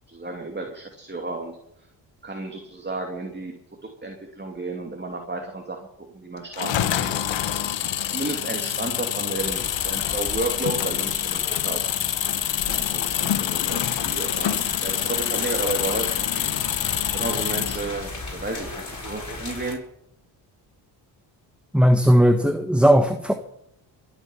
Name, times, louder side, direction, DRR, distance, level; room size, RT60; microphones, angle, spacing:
voice 1, 0.1-1.6 2.2-3.5 3.8-5.8 6.1-7.7 8.1-11.9 12.3-16.1 17.1-19.8, right 3 dB, 20° right, 2 dB, 2.7 m, -32 dB
sound 1, 6.5-17.9, left 10 dB, 60° left, 1.3 m, -26 dB
sound 2, 9.3-19.8, left 3 dB, 35° left, 7.3 m, -37 dB
voice 2, 21.7-23.3, equal, ahead, 7 dB, 1.4 m, -17 dB
22.5 x 8.9 x 5.7 m, 0.78 s
supercardioid pair, 60°, 50 cm